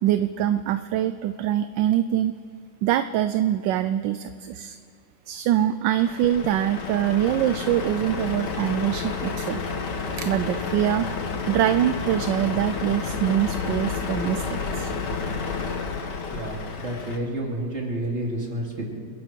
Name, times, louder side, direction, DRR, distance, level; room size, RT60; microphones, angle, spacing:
voice 1, 0.0-2.3 2.8-4.8 5.3-9.7 10.2-11.1 11.5-14.9, right 11 dB, 80° right, 11 dB, 1.2 m, -24 dB
Truck, 6.0-17.2, left 4 dB, 65° left, 2.0 m, -30 dB
voice 2, 16.3-18.9, right 1 dB, 35° right, -1 dB, 3.1 m, -30 dB
28.0 x 11.0 x 4.6 m, 2.4 s
omnidirectional pair, 2.0 m